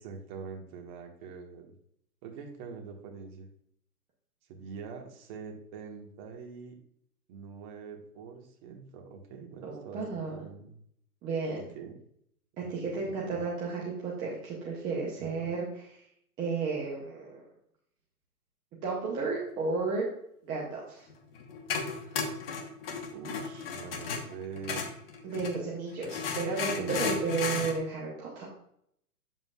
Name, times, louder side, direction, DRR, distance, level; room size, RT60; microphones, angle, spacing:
voice 1, 0.0-1.7 2.2-3.5 4.5-6.7 7.3-10.0 10.3-10.7 11.8-11.9 12.8-12.9 13.2-13.3 15.4-15.5 23.1-24.9 26.7-27.2, right 5 dB, 30° right, 2 dB, 1.5 m, -44 dB
voice 2, 9.6-10.4 11.2-11.6 12.6-15.7 16.4-17.4 18.8-20.1 20.4-21.1 22.0-22.1 25.2-28.5, right 4 dB, 10° right, -4 dB, 0.5 m, -33 dB
sound 1, 21.1-25.6 26.0-27.8, left 5 dB, 40° left, 1.3 m, -34 dB
7.6 x 7.6 x 2.3 m, 0.69 s
hypercardioid pair, 145°, 46 cm